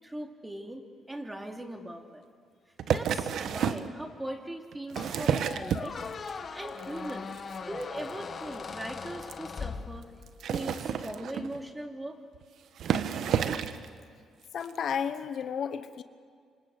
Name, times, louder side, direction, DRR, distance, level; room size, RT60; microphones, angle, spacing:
voice 1, 0.0-2.2 2.9-6.0 6.5-7.3 7.7-10.1 10.4-12.2, right 1 dB, 15° right, 3 dB, 3.2 m, -40 dB
sound 1, 2.8-3.9 4.7-6.3 6.7-7.1 7.4-7.6 7.8-7.9 8.1-8.2 8.5-8.6 9.2-9.3 10.3-11.6 12.3-12.4 12.8-13.9 14.6-14.7, right 8 dB, 70° right, 1.3 m, -30 dB
Squeak, 5.0-10.5, left 5 dB, 40° left, 1.7 m, -40 dB
voice 2, 14.5-16.0, left 7 dB, 60° left, 11 dB, 1.1 m, -32 dB
27.0 x 25.5 x 8.1 m, 2.1 s
cardioid pair, 90°, 0 cm